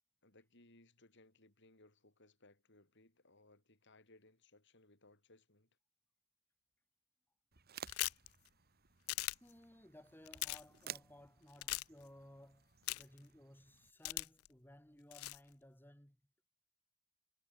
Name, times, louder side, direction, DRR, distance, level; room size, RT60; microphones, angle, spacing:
voice 1, 0.2-5.7, left 2 dB, 55° left, 5.8 m, -66 dB
sound 1, 7.5-13.9, right 8 dB, 45° right, 2.3 m, -55 dB
sound 2, 7.9-8.3 9.1-9.3 10.3-10.6 11.6-11.8 12.9-13.2 14.0-14.5 15.1-15.4, left 19 dB, 75° left, 0.4 m, -39 dB
voice 2, 9.4-16.2, left 1 dB, 10° left, 3.8 m, -59 dB
head